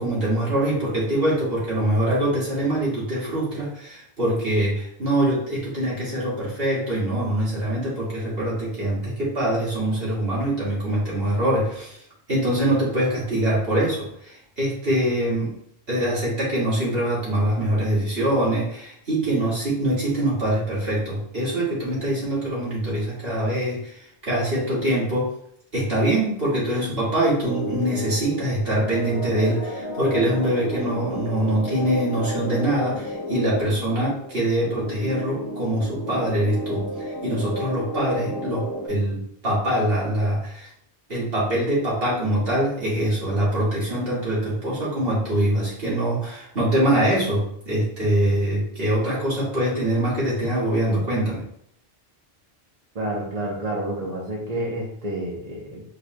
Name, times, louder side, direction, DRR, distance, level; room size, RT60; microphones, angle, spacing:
voice 1, 0.0-15.5 15.9-25.3 25.7-40.7 41.1-51.4, right 1 dB, 70° right, -7 dB, 2.3 m, -24 dB
sound 1, 27.4-38.9, equal, 20° left, 0.8 m, -32 dB
voice 2, 52.9-55.8, right 1 dB, 40° right, -3 dB, 1.0 m, -29 dB
5.0 x 4.6 x 2.2 m, 0.67 s
omnidirectional pair, 1.0 m